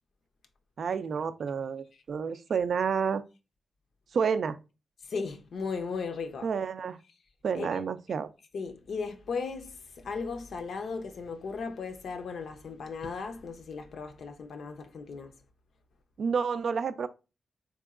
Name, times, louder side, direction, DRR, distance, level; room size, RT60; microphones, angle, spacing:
voice 1, 0.8-3.2 4.1-4.6 6.4-7.0 7.4-8.3 16.2-17.1, right 6 dB, 70° right, 0.3 m, -29 dB
voice 2, 5.1-6.5 7.5-7.8 8.5-15.3, left 5 dB, 70° left, 0.5 m, -36 dB
3.6 x 3.0 x 2.4 m
cardioid pair, 80°, 0 cm